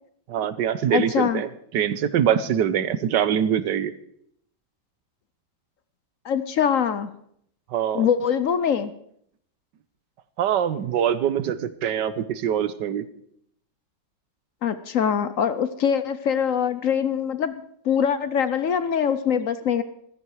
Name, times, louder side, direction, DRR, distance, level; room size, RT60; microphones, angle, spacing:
voice 1, 0.3-1.5 1.7-3.9 7.7-8.1 10.4-13.0, right 9 dB, 85° right, 14 dB, 1.5 m, -23 dB
voice 2, 0.9-1.4 6.2-7.1 7.9-8.9 14.6-17.5 17.8-19.8, left 8 dB, 60° left, 13 dB, 1.0 m, -23 dB
15.0 x 13.5 x 4.8 m, 0.68 s
omnidirectional pair, 1.8 m